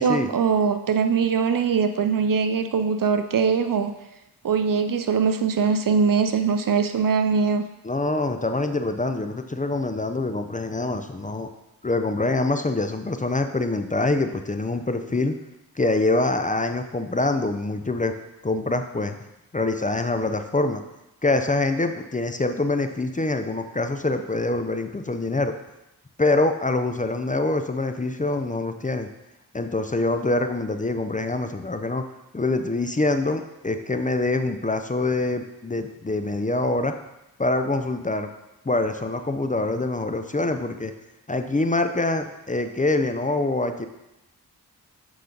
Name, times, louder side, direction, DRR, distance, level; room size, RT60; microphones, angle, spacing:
voice 1, 0.0-3.9 4.4-7.7, right 5 dB, 60° right, 8 dB, 0.7 m, -22 dB
voice 2, 7.8-11.5 11.8-15.3 15.8-18.1 18.4-19.2 19.5-20.8 21.2-25.5 26.2-29.1 29.5-32.0 32.3-36.9 37.4-38.3 38.6-40.9 41.3-43.9, left 2 dB, 20° left, 7 dB, 0.6 m, -25 dB
8.1 x 5.0 x 3.9 m, 0.92 s
cardioid pair, 55°, 38 cm